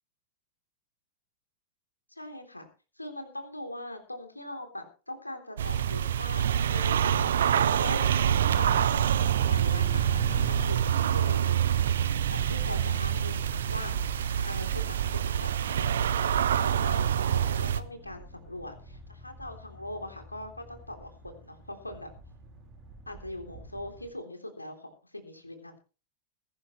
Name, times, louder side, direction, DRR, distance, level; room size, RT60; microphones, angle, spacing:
voice 1, 2.1-2.7 3.0-9.1 9.5-11.6 12.3-22.1 23.1-25.8, left 1 dB, 85° left, 5 dB, 3.4 m, -41 dB
sound 1, 5.6-17.8, right 9 dB, 65° right, 0.9 m, -26 dB
sound 2, 8.3-24.1, right 1 dB, 30° right, 4.3 m, -44 dB
21.5 x 11.5 x 3.2 m, 0.34 s
figure-of-eight pair, 90°, 0 cm